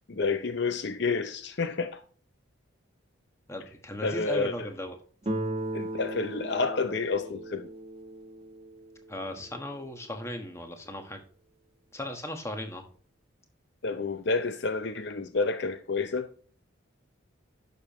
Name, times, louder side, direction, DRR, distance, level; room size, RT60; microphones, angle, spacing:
voice 1, 0.1-2.0 4.0-4.7 5.7-7.7 13.8-16.3, left 4 dB, 55° left, 0.6 m, -29 dB
voice 2, 3.5-5.0 9.1-11.2 11.9-12.8, left 1 dB, 15° left, 1.3 m, -37 dB
Guitar, 5.3-10.1, right 1 dB, 30° right, 1.1 m, -37 dB
11.0 x 6.7 x 3.0 m
head